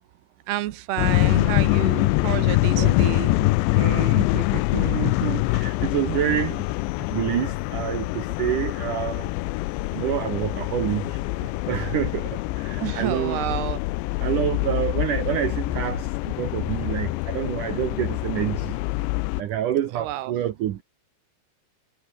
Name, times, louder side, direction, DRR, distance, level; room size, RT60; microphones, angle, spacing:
voice 1, 0.5-3.3 4.7-4.8 12.8-13.8 19.9-20.3, right 15 dB, 70° right, 2.8 m, -29 dB
sound 1, 1.0-19.4, left 22 dB, 80° left, 2.7 m, -24 dB
voice 2, 3.7-6.6 7.1-9.3 9.9-11.2 11.7-13.4 14.2-18.7 19.4-20.8, right 11 dB, 85° right, 1.8 m, -27 dB
omnidirectional pair, 5.5 m